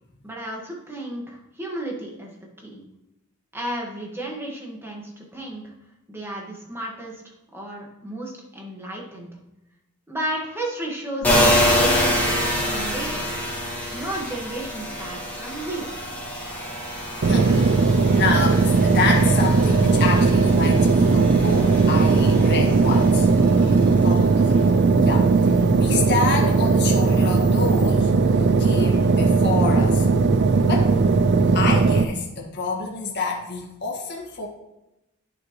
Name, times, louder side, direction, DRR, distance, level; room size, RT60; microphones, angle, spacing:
voice 1, 0.2-2.3 2.6-2.8 3.5-5.7 6.1-7.2 7.5-9.3 10.1-13.3 13.9-15.9, right 1 dB, 10° right, -1 dB, 1.6 m, -33 dB
sound 1, 11.2-24.6 25.0-27.9, left 1 dB, 10° left, 2.6 m, -27 dB
voice 2, 17.2-17.8 18.1-23.3 23.6-25.3 25.8-30.1 30.6-30.9 31.5-34.5, left 4 dB, 50° left, -1 dB, 1.8 m, -28 dB
sound 2, 17.2-32.0, right 4 dB, 55° right, 0.4 m, -18 dB
10.5 x 6.0 x 3.1 m, 0.92 s
head